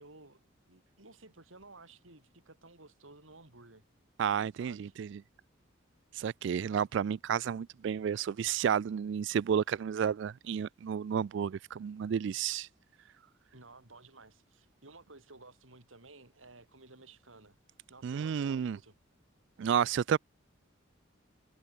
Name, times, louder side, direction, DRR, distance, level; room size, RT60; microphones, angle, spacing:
voice 1, 0.0-3.8 4.6-4.9 13.5-17.6 17.9-19.0, right 2 dB, 85° right, 5.0 m, -55 dB
voice 2, 4.2-5.2 6.1-12.7 18.0-18.8 19.6-20.2, right 8 dB, 65° right, 0.3 m, -31 dB
head